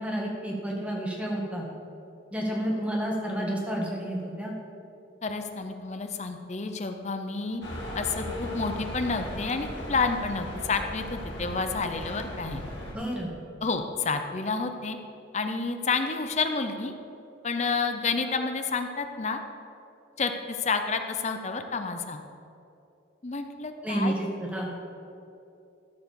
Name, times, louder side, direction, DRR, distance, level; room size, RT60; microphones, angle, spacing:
voice 1, 0.0-1.6 2.3-4.5 12.9-13.3 23.8-24.7, right 1 dB, 5° right, -2 dB, 1.6 m, -30 dB
voice 2, 5.2-7.6 7.9-12.6 13.6-15.0 15.3-16.9 17.4-19.4 20.2-22.2 23.2-24.1, left 4 dB, 35° left, 7 dB, 0.6 m, -30 dB
sound 1, 7.6-12.9, left 1 dB, 65° left, 2.3 m, -37 dB
14.0 x 4.8 x 6.9 m, 2.8 s
head